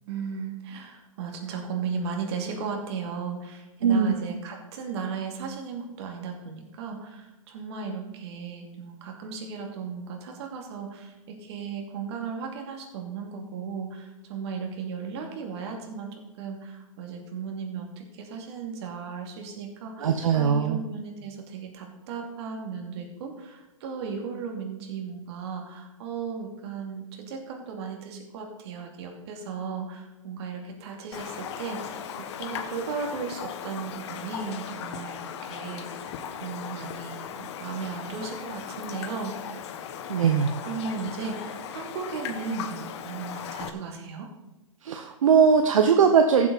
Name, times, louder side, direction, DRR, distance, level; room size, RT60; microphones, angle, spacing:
voice 1, 0.0-36.1 36.4-39.6 40.6-44.3, right 5 dB, 50° right, 2 dB, 2.6 m, -36 dB
voice 2, 3.8-4.1 20.0-20.8 40.1-40.5 44.8-46.5, right 6 dB, 70° right, 5 dB, 1.0 m, -20 dB
Raindrop, 31.1-43.7, left 8 dB, 50° left, 1.1 m, -37 dB
14.5 x 7.8 x 4.1 m, 1.1 s
hypercardioid pair, 120°, 18 cm